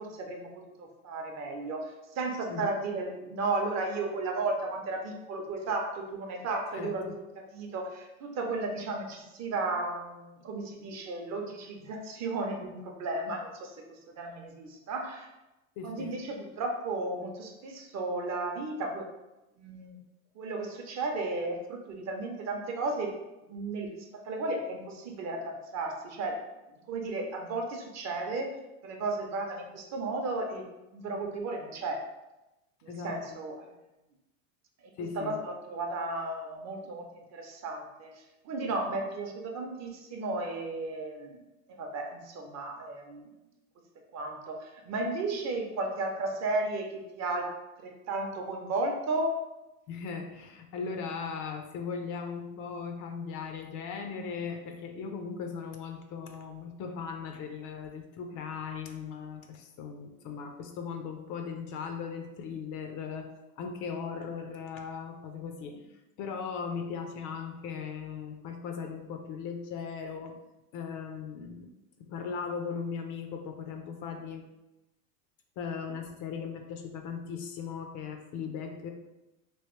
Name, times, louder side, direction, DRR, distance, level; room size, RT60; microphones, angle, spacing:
voice 1, 0.0-15.3 15.8-19.1 19.6-19.9 20.4-23.2 23.5-26.4 26.9-28.6 28.8-32.0 32.8-33.7 35.0-41.4 41.8-43.3 44.1-49.4, right 2 dB, 40° right, 2 dB, 0.6 m, -34 dB
voice 2, 6.7-7.2 15.8-16.1 32.9-33.2 35.0-35.4 49.9-63.3 63.6-65.8 66.2-70.4 70.7-71.7 72.0-74.5 75.6-78.9, left 6 dB, 45° left, 4 dB, 0.4 m, -38 dB
3.1 x 2.8 x 3.0 m, 0.98 s
supercardioid pair, 115°, 44 cm